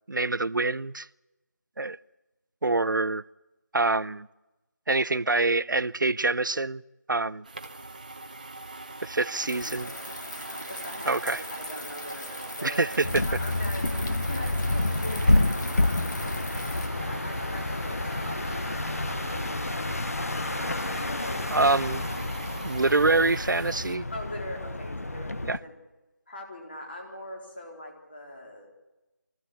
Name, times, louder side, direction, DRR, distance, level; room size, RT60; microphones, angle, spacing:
voice 1, 0.1-1.1 1.8-2.0 2.6-3.2 3.7-4.3 4.9-6.8 7.1-7.4 9.0-9.9 11.1-11.4 12.6-13.3 21.5-22.1 22.6-24.1 25.5-25.6, right 3 dB, 90° right, 0.6 m, -25 dB
sound 1, 7.4-24.0, right 2 dB, 25° right, 1.0 m, -42 dB
voice 2, 9.0-10.0 10.6-13.0 13.3-14.0 14.3-16.4 17.1-20.3 21.1-21.4 24.1-25.3 25.6-25.7 26.3-28.7, left 1 dB, 30° left, 4.0 m, -42 dB
sound 2, 9.5-16.9, left 1 dB, 70° left, 2.5 m, -41 dB
sound 3, 13.0-25.6, left 2 dB, 50° left, 1.2 m, -29 dB
22.5 x 15.5 x 8.4 m
figure-of-eight pair, 175°, 10 cm